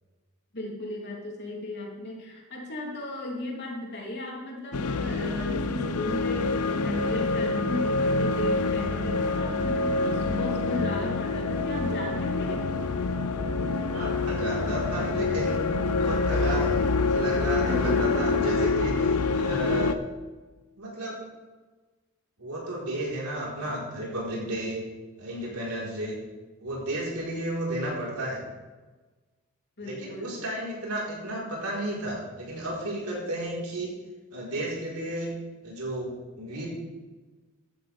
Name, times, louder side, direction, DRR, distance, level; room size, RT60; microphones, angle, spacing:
voice 1, 0.5-12.7 17.6-18.6 29.8-30.5, left 2 dB, 50° left, -2 dB, 3.1 m, -35 dB
sound 1, 4.7-19.9, left 3 dB, 90° left, 0.7 m, -26 dB
voice 2, 13.9-15.7 16.0-20.0 20.8-21.2 22.4-24.8 25.2-26.2 26.6-28.4 29.8-33.9 34.3-35.3 35.6-36.7, right 1 dB, 90° right, -4 dB, 4.3 m, -33 dB
14.0 x 10.5 x 3.5 m, 1.3 s
head